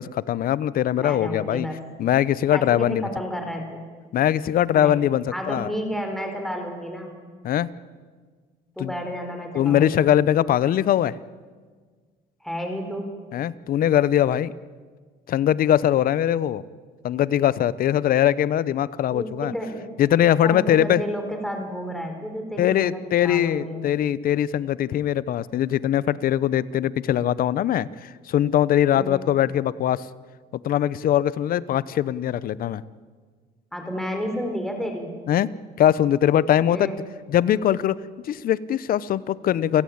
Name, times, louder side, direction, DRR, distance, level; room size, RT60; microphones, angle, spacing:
voice 1, 0.0-1.7 2.0-3.1 4.1-5.7 7.4-7.7 8.8-8.9 9.5-11.2 13.3-14.5 15.3-16.6 17.0-19.5 20.0-21.0 22.6-30.1 30.5-32.8 35.3-36.9 37.3-39.8, left 11 dB, 60° left, 19 dB, 0.8 m, -21 dB
voice 2, 1.0-1.8 2.5-3.8 4.7-7.1 8.8-10.1 12.4-13.2 19.1-19.9 20.4-23.8 28.9-29.2 33.7-35.1 36.6-37.0, equal, ahead, 4 dB, 4.3 m, -31 dB
29.0 x 17.0 x 8.8 m, 1.5 s
cardioid pair, 110°, 17 cm